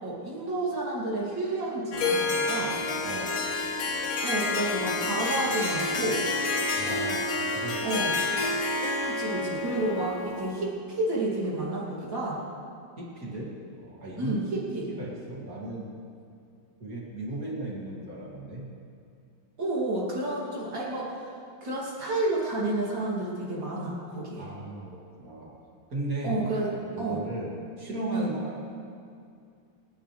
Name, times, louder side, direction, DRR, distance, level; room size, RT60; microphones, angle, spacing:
voice 1, 0.0-2.8 4.2-6.3 7.8-8.2 9.0-12.4 14.2-14.9 19.6-21.1 21.6-24.5 26.2-27.2 28.1-28.4, right 2 dB, 80° right, -5 dB, 3.7 m, -30 dB
Harp, 1.9-10.7, left 3 dB, 55° left, 1.4 m, -29 dB
voice 2, 3.0-3.4 6.7-7.8 13.0-13.5 13.8-14.3 14.9-15.9 16.8-18.7 24.4-25.5 25.9-26.4 26.7-28.6, right 2 dB, 50° right, -4 dB, 3.2 m, -36 dB
28.5 x 10.0 x 3.4 m, 2.4 s
omnidirectional pair, 2.0 m